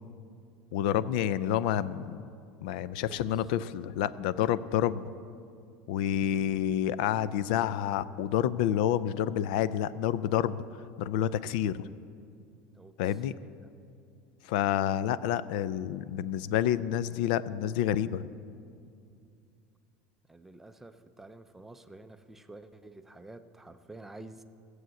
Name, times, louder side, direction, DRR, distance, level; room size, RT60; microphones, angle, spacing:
voice 1, 0.7-2.2 2.6-5.0 5.9-10.6 11.0-11.9 13.0-13.3 14.5-18.3, left 10 dB, 80° left, 17 dB, 0.5 m, -28 dB
voice 2, 3.0-3.4 12.7-12.9 13.4-13.7 20.3-24.4, right 2 dB, 5° right, 9 dB, 0.5 m, -49 dB
15.5 x 7.9 x 7.6 m, 2.4 s
cardioid pair, 155°, 5 cm